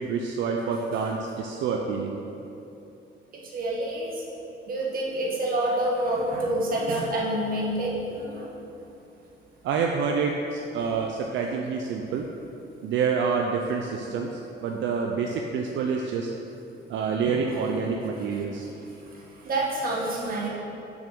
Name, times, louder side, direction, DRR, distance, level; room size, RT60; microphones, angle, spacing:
voice 1, 0.0-2.2 9.6-12.3 12.8-16.3 16.9-18.7, right 5 dB, 75° right, 2 dB, 0.6 m, -27 dB
voice 2, 3.5-4.1 4.7-8.4 17.2-17.4 19.5-20.5, right 1 dB, 50° right, -3 dB, 1.9 m, -27 dB
7.0 x 6.4 x 6.1 m, 2.9 s
cardioid pair, 150°, 20 cm